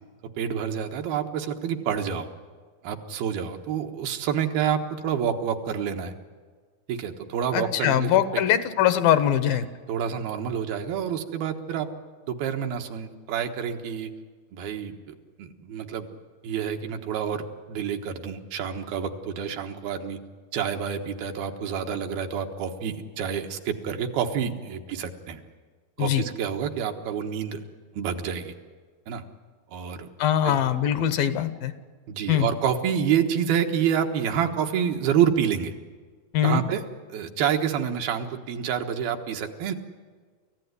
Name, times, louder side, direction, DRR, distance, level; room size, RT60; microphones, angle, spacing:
voice 1, 0.4-2.3 2.8-6.1 6.9-8.4 9.9-11.9 12.3-14.1 14.5-16.1 16.4-20.2 20.5-25.4 26.0-27.6 28.0-28.5 29.1-29.2 29.7-30.1 30.4-30.6 32.1-35.7 36.4-36.8 37.1-39.7, right 8 dB, 80° right, 4 dB, 3.3 m, -28 dB
voice 2, 7.5-9.7 26.0-26.2 30.2-31.7 32.3-32.5 36.3-36.6, left 10 dB, 75° left, 11 dB, 2.9 m, -22 dB
28.0 x 15.0 x 9.6 m, 1.5 s
omnidirectional pair, 4.2 m